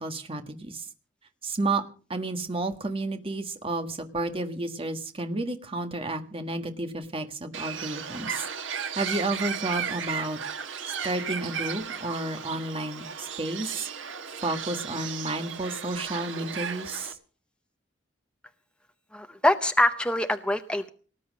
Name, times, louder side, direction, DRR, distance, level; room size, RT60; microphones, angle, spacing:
voice 1, 0.0-0.8 1.4-1.8 2.1-8.5 8.9-10.4 11.0-13.9 14.4-17.1, right 2 dB, 30° right, 7 dB, 1.6 m, -31 dB
Bird, 7.5-17.1, right 7 dB, 90° right, 1.5 m, -35 dB
voice 2, 19.1-20.9, left 1 dB, 5° left, 8 dB, 0.7 m, -24 dB
19.0 x 8.5 x 6.5 m, 0.40 s
head